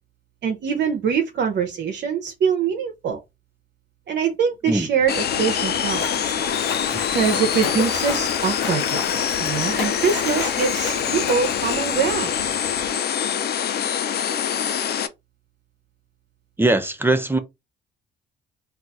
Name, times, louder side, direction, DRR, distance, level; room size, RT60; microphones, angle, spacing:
voice 1, 0.4-3.2 4.1-6.3 7.1-12.3, right 6 dB, 60° right, 0.6 m, -24 dB
Splash splatter, 5.0-12.9, left 6 dB, 90° left, 0.7 m, -32 dB
sound 1, 5.1-15.1, left 8 dB, 55° left, 0.5 m, -25 dB
voice 2, 16.6-17.4, right 2 dB, 10° right, 0.6 m, -20 dB
2.4 x 2.3 x 4.0 m
cardioid pair, 90°, 20 cm